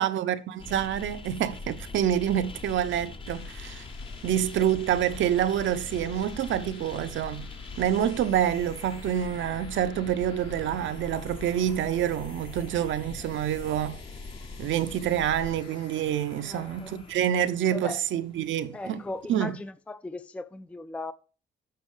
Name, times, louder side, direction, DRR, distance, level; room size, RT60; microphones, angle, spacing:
voice 1, 0.0-3.8 4.2-7.5 7.8-14.0 14.6-19.0 19.3-19.6, right 10 dB, 75° right, 0.8 m, -27 dB
sound 1, 0.6-19.5, left 3 dB, 25° left, 0.8 m, -43 dB
sound 2, 3.0-17.5, left 5 dB, 75° left, 2.4 m, -51 dB
voice 2, 16.4-17.0 17.7-18.0 18.7-21.1, left 2 dB, 5° left, 0.4 m, -38 dB
6.9 x 6.2 x 6.5 m
cardioid pair, 90°, 20 cm